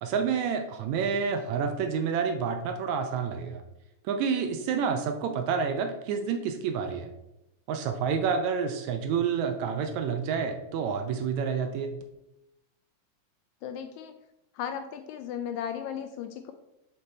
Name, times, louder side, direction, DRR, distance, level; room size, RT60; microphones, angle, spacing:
voice 1, 0.0-3.6 4.1-7.1 7.7-11.9, right 6 dB, 75° right, 6 dB, 1.8 m, -29 dB
voice 2, 13.6-14.1 14.5-16.5, left 8 dB, 80° left, 8 dB, 1.7 m, -36 dB
6.7 x 6.3 x 4.1 m, 0.90 s
omnidirectional pair, 3.6 m